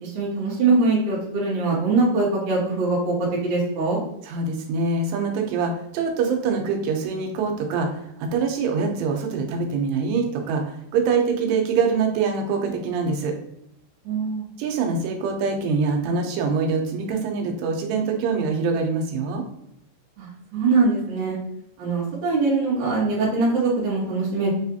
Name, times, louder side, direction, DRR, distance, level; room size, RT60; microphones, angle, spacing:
voice 1, 0.0-3.1 3.4-4.0 14.0-14.5 20.2-20.3 20.5-21.4 21.8-24.5, right 3 dB, 60° right, -7 dB, 2.1 m, -22 dB
voice 2, 4.2-13.3 14.6-19.4, right 5 dB, 85° right, 2 dB, 2.9 m, -24 dB
6.3 x 2.5 x 2.7 m, 0.79 s
omnidirectional pair, 4.8 m